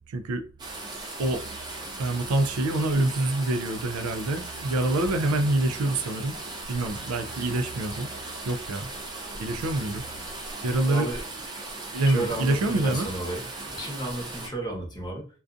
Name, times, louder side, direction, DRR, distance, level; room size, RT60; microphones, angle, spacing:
voice 1, 0.1-0.4 1.2-1.4 2.0-6.4 6.7-8.1 8.5-8.9 9.4-10.0 10.6-11.1 11.9-13.1, right 2 dB, 80° right, 0.4 m, -26 dB
sound 1, 0.6-14.5, right 2 dB, 20° right, 0.5 m, -38 dB
voice 2, 10.8-11.2 12.1-13.4 13.7-15.3, right 2 dB, 20° left, 0.8 m, -33 dB
2.4 x 2.2 x 2.5 m
head